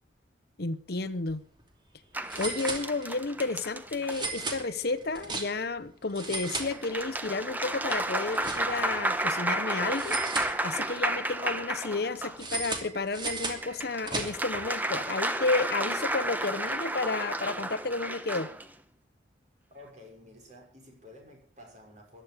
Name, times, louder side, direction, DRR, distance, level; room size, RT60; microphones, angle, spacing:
voice 1, 0.6-1.4 2.4-10.2 10.6-18.5, left 3 dB, 60° left, 0.9 m, -32 dB
sound 1, 1.1-1.3 1.6-1.7 2.3-3.3 4.1-5.8 6.1-7.3 7.6-9.0 10.0-11.1 12.4-14.6, right 3 dB, 25° right, 2.7 m, -36 dB
sound 2, 2.1-4.6 6.4-12.4 13.3-18.7, right 1 dB, 10° right, 1.1 m, -32 dB
voice 2, 19.7-22.2, left 1 dB, 40° right, 5.9 m, -51 dB
15.0 x 11.5 x 6.5 m
head